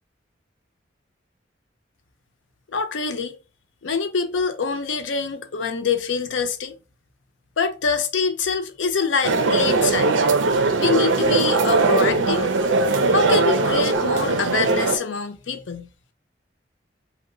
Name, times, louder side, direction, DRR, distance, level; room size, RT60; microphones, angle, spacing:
voice 1, 2.7-3.4 3.8-6.7 7.6-10.2 10.8-12.5 13.1-15.9, left 5 dB, 85° left, 0.5 m, -25 dB
sound 1, 9.2-15.0, right 3 dB, 90° right, 0.5 m, -20 dB
2.8 x 2.1 x 3.7 m
head